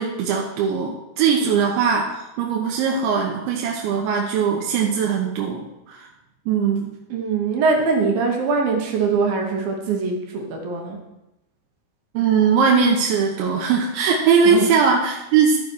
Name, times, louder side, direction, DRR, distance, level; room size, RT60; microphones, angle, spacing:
voice 1, 0.0-6.1 6.5-6.9 12.1-15.6, right 6 dB, 90° right, -1 dB, 3.2 m, -20 dB
voice 2, 7.1-11.0 14.4-14.7, right 4 dB, 65° right, 1 dB, 2.6 m, -22 dB
13.0 x 6.0 x 4.5 m, 0.93 s
omnidirectional pair, 5.1 m